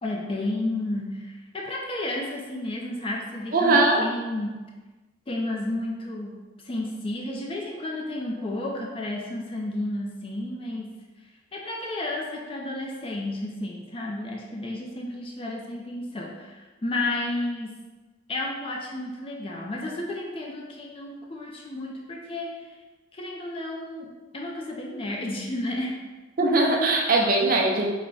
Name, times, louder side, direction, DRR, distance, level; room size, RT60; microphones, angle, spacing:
voice 1, 0.0-4.6 5.3-17.7 18.3-22.8 23.1-26.0, left 1 dB, 30° left, -1 dB, 0.4 m, -32 dB
voice 2, 3.5-4.0 26.4-27.9, right 2 dB, 45° right, 0 dB, 0.6 m, -20 dB
4.7 x 2.2 x 3.8 m, 1.2 s
head